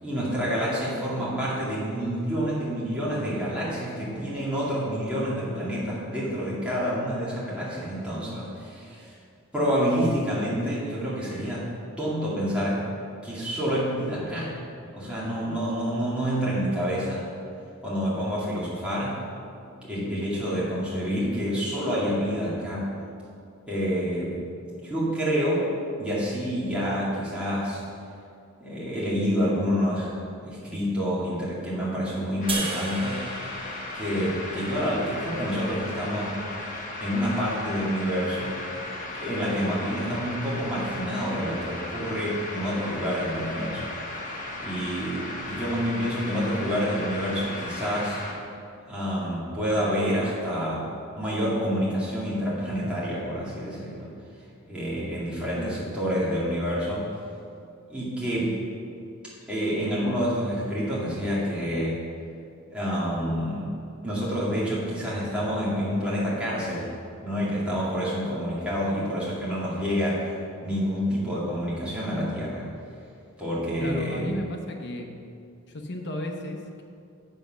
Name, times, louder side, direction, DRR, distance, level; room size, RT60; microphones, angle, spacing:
voice 1, 0.0-9.1 9.5-11.6 12.0-12.8 13.2-14.5 14.9-17.2 17.8-19.2 19.8-22.9 23.7-24.4 24.8-25.7 26.0-27.8 28.6-30.1 30.4-33.2 33.9-36.3 37.0-38.5 39.2-43.9 44.6-48.2 48.8-50.8 51.2-54.1 54.6-57.1 57.9-58.5 59.5-62.0 62.7-63.7 64.0-66.9 67.2-70.2 70.6-72.6 73.4-74.3, equal, 5° right, -9 dB, 2.3 m, -28 dB
sound 1, 32.4-48.3, left 2 dB, 40° left, 1.3 m, -36 dB
sound 2, 32.5-35.8, right 4 dB, 25° right, 1.1 m, -36 dB
voice 2, 73.8-75.1 75.7-76.8, left 1 dB, 55° left, 3 dB, 1.0 m, -34 dB
7.9 x 6.9 x 6.2 m, 2.5 s
head